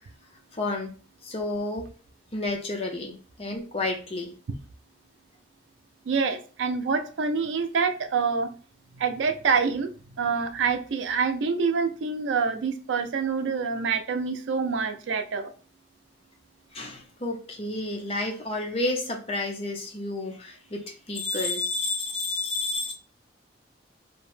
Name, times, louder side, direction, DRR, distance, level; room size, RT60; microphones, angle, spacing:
voice 1, 0.5-0.9 1.2-1.9 2.3-4.3 16.7-22.9, left 2 dB, 30° left, 2 dB, 0.5 m, -30 dB
voice 2, 6.1-8.5 9.0-15.5, right 5 dB, 80° right, 7 dB, 0.4 m, -26 dB
2.7 x 2.1 x 3.1 m, 0.38 s
head